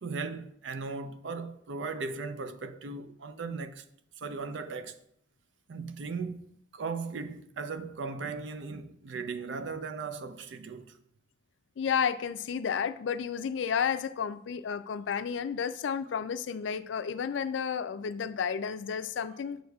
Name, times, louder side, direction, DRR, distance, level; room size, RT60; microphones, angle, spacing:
voice 1, 0.0-3.8 4.2-4.9 5.7-11.0, right 4 dB, 75° right, 0.5 m, -37 dB
voice 2, 11.8-19.6, left 7 dB, 75° left, 0.4 m, -32 dB
7.7 x 6.4 x 2.3 m
head